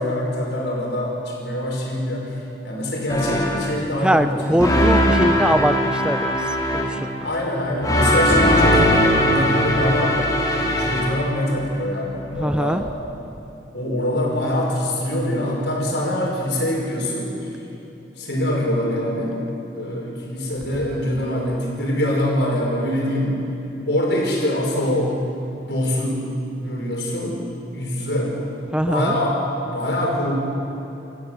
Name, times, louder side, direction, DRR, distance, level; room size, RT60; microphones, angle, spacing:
voice 1, 0.0-4.6 7.2-10.2 10.8-12.8 13.7-17.3 18.2-19.4 19.7-23.4 23.9-25.2 25.6-26.2 26.6-27.4 27.7-28.4 28.9-30.4, left 1 dB, 75° left, -2 dB, 5.5 m, -24 dB
sound 1, 3.1-3.8 4.6-7.1 7.8-11.4, equal, 20° left, 2.5 m, -19 dB
voice 2, 4.0-7.1 10.5-10.7 12.4-12.8 28.7-29.2, equal, 5° right, 10 dB, 0.5 m, -22 dB
27.0 x 14.0 x 7.9 m, 2.9 s
head